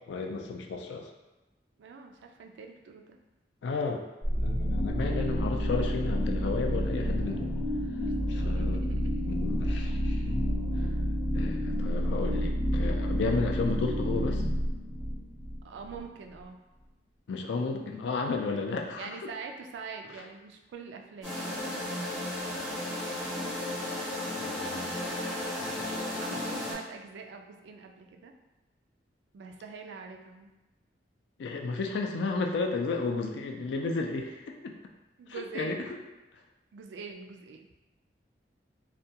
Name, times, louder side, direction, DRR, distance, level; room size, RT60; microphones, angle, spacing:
voice 1, 0.1-1.1 3.6-4.0 4.4-7.5 8.3-10.3 11.3-14.4 17.3-19.1 24.0-25.0 25.7-25.9 31.4-34.7 35.3-35.8, left 3 dB, 80° left, 3 dB, 0.3 m, -33 dB
voice 2, 1.8-3.2 8.5-9.4 15.6-16.6 19.0-21.7 26.2-28.3 29.3-30.5 35.2-35.9 36.7-37.7, right 4 dB, 85° right, 3 dB, 0.3 m, -44 dB
sound 1, 4.2-16.0, equal, 65° left, 0.8 m, -29 dB
sound 2, 21.2-26.7, left 1 dB, ahead, 0.8 m, -34 dB
2.3 x 2.2 x 2.7 m, 1.1 s
head